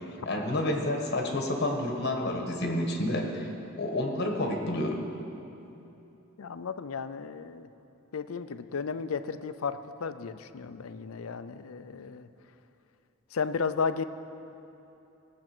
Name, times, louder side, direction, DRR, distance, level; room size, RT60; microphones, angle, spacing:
voice 1, 0.2-3.5 3.8-5.0, left 1 dB, 55° left, 1 dB, 1.6 m, -29 dB
voice 2, 6.4-7.7 8.1-12.3 13.3-14.0, left 5 dB, 90° left, 11 dB, 0.5 m, -34 dB
18.0 x 7.5 x 6.1 m, 2.9 s
head